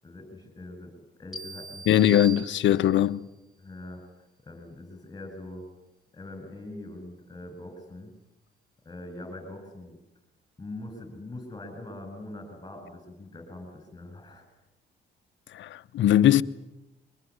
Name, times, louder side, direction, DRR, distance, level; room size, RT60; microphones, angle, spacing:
voice 1, 0.0-0.9 1.2-2.1 3.6-5.7 6.1-8.1 8.8-10.0 10.6-14.5, left 2 dB, 20° left, 7.4 m, -43 dB
sound 1, 1.3-3.1, right 4 dB, ahead, 2.3 m, -41 dB
voice 2, 1.9-3.2 15.5-16.4, left 12 dB, 70° left, 0.9 m, -21 dB
24.0 x 21.0 x 9.7 m
cardioid pair, 90°, 20 cm